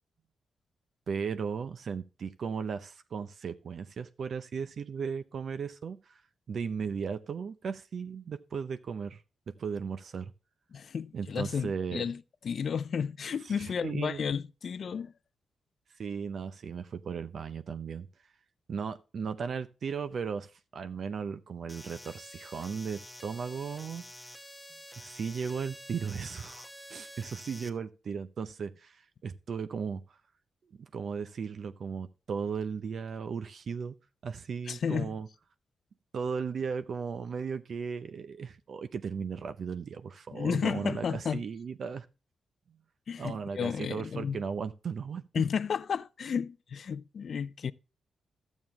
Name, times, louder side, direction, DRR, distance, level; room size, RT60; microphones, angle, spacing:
voice 1, 1.1-6.2 6.5-9.2 9.6-10.3 11.1-12.0 13.5-14.2 16.0-18.1 18.7-24.1 25.0-30.0 30.8-33.9 34.2-35.3 36.1-42.1 43.2-45.4, right 6 dB, 60° right, 0.6 m, -36 dB
voice 2, 10.7-15.1 34.7-35.1 40.3-41.4 43.1-44.4 45.3-47.7, left 6 dB, 55° left, 0.4 m, -32 dB
sound 1, 21.7-27.7, left 1 dB, 5° left, 1.3 m, -48 dB
12.5 x 7.2 x 3.0 m
cardioid pair, 100°, 0 cm